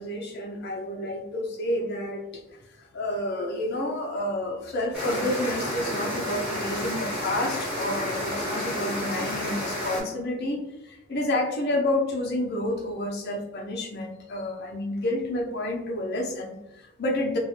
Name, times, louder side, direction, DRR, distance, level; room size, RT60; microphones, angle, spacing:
voice 1, 0.0-2.4 2.8-17.4, left 1 dB, 50° left, 1 dB, 0.5 m, -30 dB
sound 1, 4.9-10.0, equal, 5° right, 0.9 m, -30 dB
2.3 x 2.1 x 2.9 m, 0.96 s
head